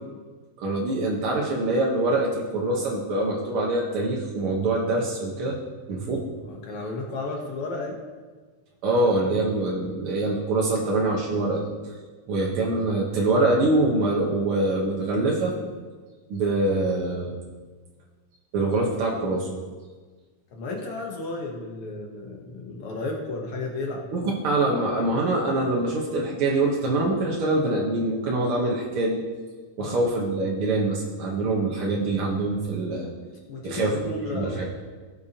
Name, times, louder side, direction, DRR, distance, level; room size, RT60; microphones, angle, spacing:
voice 1, 0.6-5.6 5.9-6.3 8.8-11.9 12.3-15.5 16.3-17.3 18.5-19.5 24.1-29.2 29.8-33.1 33.6-34.0 34.3-34.7, right 2 dB, 65° right, -2 dB, 1.4 m, -24 dB
voice 2, 6.4-8.0 20.5-24.0 29.8-30.0 33.5-34.7, left 2 dB, 70° left, 0 dB, 1.3 m, -33 dB
17.5 x 6.8 x 2.9 m, 1.4 s
omnidirectional pair, 3.8 m